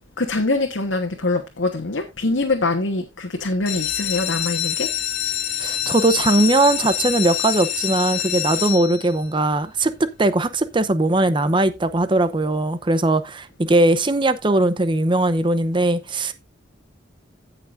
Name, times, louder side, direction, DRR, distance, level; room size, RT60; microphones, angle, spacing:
voice 1, 0.2-4.9, left 2 dB, 85° left, 1.3 m, -24 dB
sound 1, 3.5-9.3 9.9-10.4 10.8-10.9 11.1-11.2 11.6-11.8, left 10 dB, 50° left, 3.0 m, -26 dB
voice 2, 5.6-9.9 10.2-16.3, right 2 dB, 25° right, 0.7 m, -19 dB
17.0 x 5.9 x 2.6 m
head